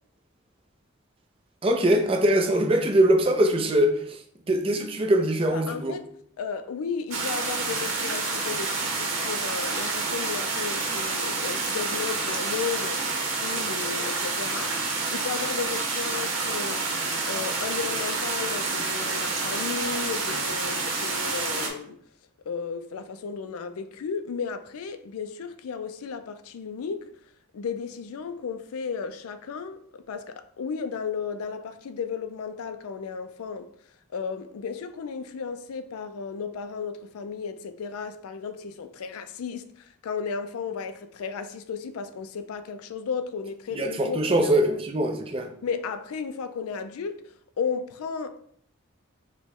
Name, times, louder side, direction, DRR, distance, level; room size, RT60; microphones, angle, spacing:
voice 1, 1.6-4.2 4.5-6.0 43.7-45.5, right 1 dB, 25° right, 0.4 m, -22 dB
voice 2, 5.5-6.1 6.4-22.0 22.5-27.0 27.5-33.7 34.1-44.8 45.6-48.4, left 6 dB, 90° left, 0.4 m, -34 dB
sound 1, 7.1-21.7, right 3 dB, 70° right, 0.9 m, -28 dB
5.0 x 2.2 x 3.5 m
head